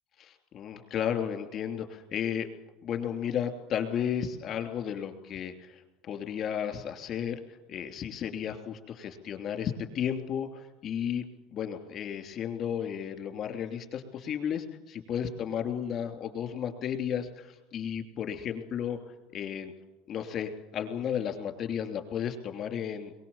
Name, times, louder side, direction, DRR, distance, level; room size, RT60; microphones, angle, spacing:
voice 1, 0.2-2.5 2.8-7.4 7.7-11.2 11.5-19.7 20.1-23.2, left 8 dB, 45° left, 6 dB, 3.2 m, -33 dB
23.0 x 21.0 x 7.3 m, 1.0 s
cardioid pair, 140°, 0 cm